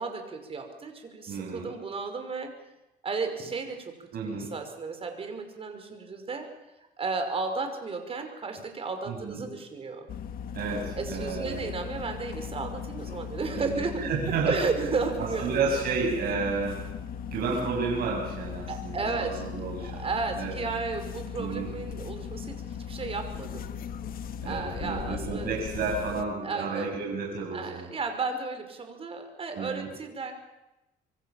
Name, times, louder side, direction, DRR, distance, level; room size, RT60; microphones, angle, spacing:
voice 1, 0.0-2.5 3.0-6.5 7.0-10.1 11.0-15.8 16.2-16.4 18.7-19.4 19.8-23.7 24.4-25.5 26.4-27.0 27.5-30.3, right 4 dB, 35° right, 6 dB, 5.6 m, -34 dB
voice 2, 1.3-1.7 4.1-4.5 9.1-9.4 10.5-11.6 13.6-13.8 14.1-14.5 15.4-16.8 17.3-20.0 20.4-20.5 21.4-21.7 24.4-27.9 29.6-29.9, right 4 dB, 65° right, -2 dB, 7.1 m, -31 dB
sound 1, 10.1-26.2, left 7 dB, 60° left, 1.9 m, -38 dB
26.5 x 24.0 x 7.5 m, 0.96 s
cardioid pair, 110°, 17 cm